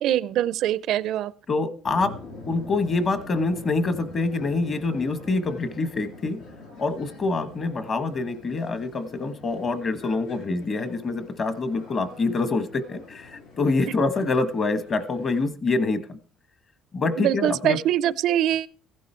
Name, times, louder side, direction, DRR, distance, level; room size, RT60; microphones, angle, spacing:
voice 1, 0.0-1.3 17.2-18.7, right 12 dB, 65° right, 0.5 m, -23 dB
voice 2, 1.5-2.2 2.5-6.4 6.8-16.2 16.9-17.8, left 3 dB, 35° left, 1.3 m, -26 dB
sound 1, 1.8-15.4, left 3 dB, 90° left, 5.7 m, -45 dB
15.5 x 11.5 x 4.5 m
cardioid pair, 145°, 0 cm